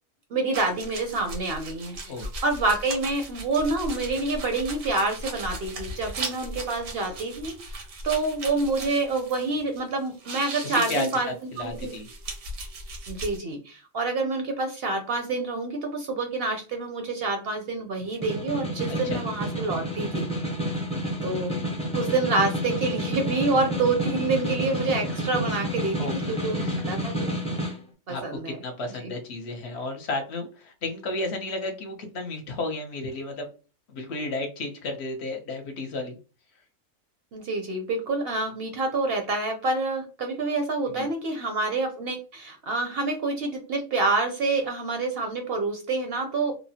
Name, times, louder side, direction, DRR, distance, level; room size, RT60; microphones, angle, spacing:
voice 1, 0.3-11.9 13.1-20.3 20.6-20.7 21.2-21.6 21.9-27.2 28.1-28.6 29.0-29.1 37.3-46.6, right 3 dB, 60° right, 5 dB, 0.7 m, -27 dB
sound 1, 0.5-9.8 10.1-13.4, right 2 dB, 90° right, 1.2 m, -37 dB
voice 2, 10.6-12.1 18.9-19.2 26.0-26.8 28.1-33.5 33.9-36.2 40.9-41.1, left 2 dB, 60° left, 4 dB, 0.9 m, -33 dB
Snare drum, 18.0-27.8, equal, 10° left, 0.4 m, -30 dB
2.9 x 2.0 x 2.7 m, 0.34 s
omnidirectional pair, 1.3 m